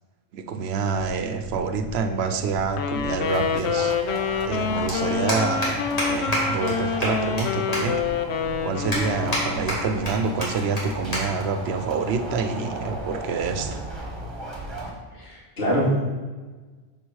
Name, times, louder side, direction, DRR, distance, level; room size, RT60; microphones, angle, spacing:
voice 1, 0.3-4.0 4.5-8.0 8.6-13.8, right 5 dB, 75° right, 8 dB, 0.9 m, -27 dB
sound 1, 0.9-14.9, right 1 dB, 25° right, 1.4 m, -36 dB
sound 2, 2.6-2.7 4.1-4.2 4.4-4.6 4.9-5.0 5.3-5.7 6.0-6.1 6.3-6.4 6.7-6.8 7.0-7.4 7.7-7.8 8.3-8.4 8.9-9.4 9.7-10.1 10.4-10.5 10.8-10.9 11.1-11.2 11.5-11.8 12.5-12.8, equal, 35° left, 2.2 m, -27 dB
Wind instrument woodwind instrument, 2.7-9.9, left 6 dB, 85° left, 0.9 m, -27 dB
voice 2, 15.1-16.0, equal, 70° left, -8 dB, 2.7 m, -24 dB
6.3 x 4.3 x 6.3 m, 1.3 s
omnidirectional pair, 1.1 m